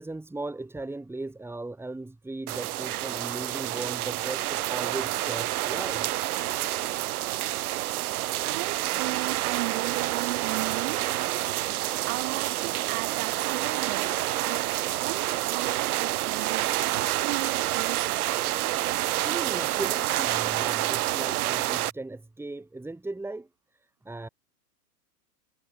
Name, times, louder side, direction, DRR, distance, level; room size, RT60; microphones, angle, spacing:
voice 1, 0.0-6.1 19.2-23.5 24.0-24.3, right 2 dB, 5° right, 4.5 m, -37 dB
sound 1, 2.5-21.9, right 15 dB, 60° right, 1.7 m, -28 dB
voice 2, 8.4-11.0 12.1-18.4, right 29 dB, 45° right, 4.6 m, -36 dB
hypercardioid pair, 125°, 49 cm